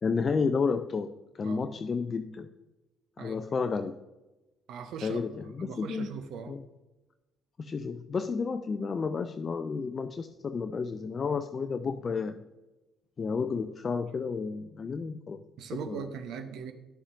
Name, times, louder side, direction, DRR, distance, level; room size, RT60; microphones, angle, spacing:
voice 1, 0.0-1.1 1.3-2.5 3.2-4.0 5.0-6.1 6.5-6.6 7.6-12.4 13.2-15.4 15.7-16.1, left 5 dB, 40° left, 8 dB, 0.4 m, -31 dB
voice 2, 4.7-5.2 5.6-6.6 15.6-16.7, right 7 dB, 60° right, 9 dB, 0.7 m, -40 dB
10.5 x 6.9 x 2.6 m, 1.1 s
figure-of-eight pair, 45°, 0 cm